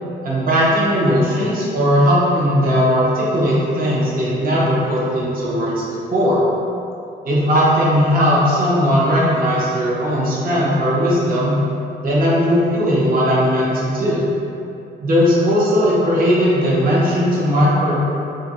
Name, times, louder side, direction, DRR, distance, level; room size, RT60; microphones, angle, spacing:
voice 1, 0.2-6.4 7.2-11.6 12.0-14.2 15.0-18.0, equal, 45° right, -6 dB, 0.8 m, -17 dB
2.6 x 2.5 x 4.0 m, 2.7 s
cardioid pair, 90°, 20 cm